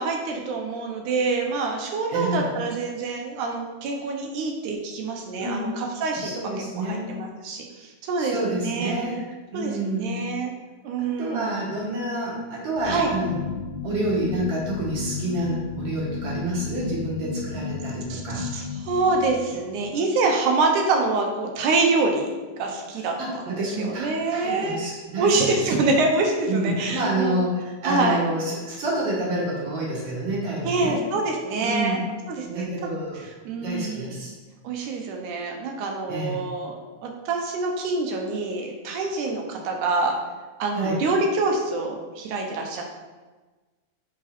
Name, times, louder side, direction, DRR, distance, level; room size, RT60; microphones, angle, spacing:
voice 1, 0.0-8.9 9.5-10.5 10.8-11.6 12.9-13.1 18.1-22.3 22.6-24.8 25.2-27.5 27.8-28.2 30.6-32.0 32.3-32.7 33.4-34.1 34.6-36.8 37.0-40.1 40.6-42.8, right 3 dB, 90° right, 1 dB, 2.3 m, -26 dB
voice 2, 5.4-5.7 6.1-7.1 8.2-9.2 9.5-10.2 11.0-13.4 13.8-18.5 23.0-25.4 26.5-31.0 31.6-32.0 32.4-33.3 33.6-34.3 36.1-36.4 40.7-41.0, right 1 dB, 55° right, -5 dB, 2.3 m, -28 dB
sound 1, 12.8-19.9, left 5 dB, 85° left, 2.4 m, -34 dB
5.4 x 5.0 x 4.2 m, 1.3 s
omnidirectional pair, 3.4 m